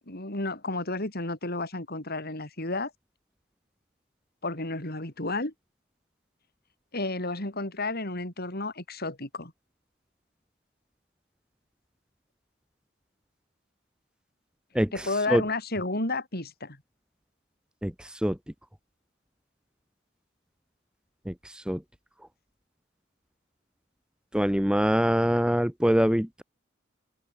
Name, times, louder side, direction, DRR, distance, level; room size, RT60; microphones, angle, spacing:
voice 1, 0.1-2.9 4.4-5.5 6.9-9.5 14.9-16.8, left 2 dB, 55° left, 7.9 m, -32 dB
voice 2, 24.3-26.4, equal, 5° right, 0.7 m, -23 dB
open air
head